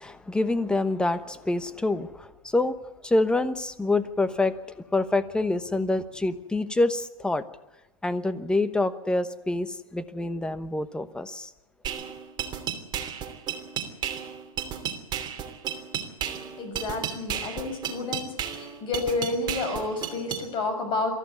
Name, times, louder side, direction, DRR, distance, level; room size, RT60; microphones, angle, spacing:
voice 1, 0.0-2.8 3.0-4.6 4.9-7.4 8.0-11.5, left 2 dB, 5° left, 11 dB, 1.1 m, -26 dB
sound 1, 11.8-20.4, right 8 dB, 25° right, 3.0 m, -33 dB
voice 2, 16.6-21.1, left 3 dB, 30° left, 6 dB, 6.7 m, -30 dB
23.5 x 14.5 x 9.5 m, 0.95 s
hypercardioid pair, 130°, 18 cm